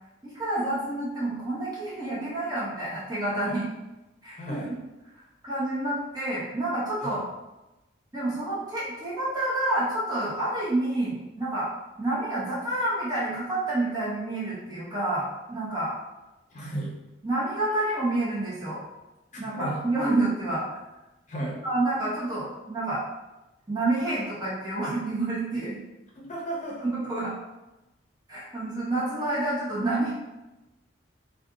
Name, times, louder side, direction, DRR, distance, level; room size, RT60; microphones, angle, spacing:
voice 1, 0.3-3.7 4.2-4.6 5.4-7.2 8.1-11.7 12.0-15.9 17.2-18.8 19.4-20.8 21.6-23.0 23.7-25.8 26.8-27.3 28.3-30.1, right 2 dB, 20° right, -8 dB, 0.7 m, -28 dB
voice 2, 4.4-4.7 7.0-7.2 16.5-16.9 19.4-19.8 21.3-21.6 26.1-26.9, right 1 dB, 40° left, -3 dB, 0.7 m, -34 dB
2.4 x 2.3 x 3.7 m, 1.0 s
head